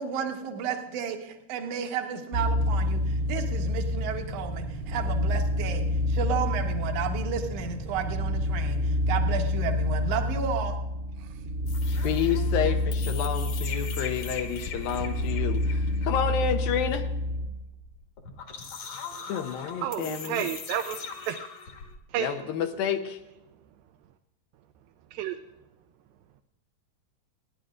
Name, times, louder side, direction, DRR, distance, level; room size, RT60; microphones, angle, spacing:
voice 1, 0.0-10.7 11.2-11.3, right 7 dB, 60° right, 3 dB, 1.7 m, -32 dB
sound 1, 2.3-17.5, left 1 dB, 35° right, 1.4 m, -28 dB
sound 2, 2.5-10.4, left 1 dB, 30° left, 0.9 m, -38 dB
sound 3, 11.7-21.9, left 5 dB, 60° left, 2.3 m, -41 dB
voice 2, 12.0-17.1 19.3-20.5 22.2-23.2, left 8 dB, 75° left, 6 dB, 2.4 m, -30 dB
voice 3, 19.8-21.4 22.1-22.3 25.1-25.4, right 10 dB, 80° right, 6 dB, 2.3 m, -31 dB
30.0 x 10.5 x 2.5 m, 0.95 s
omnidirectional pair, 4.4 m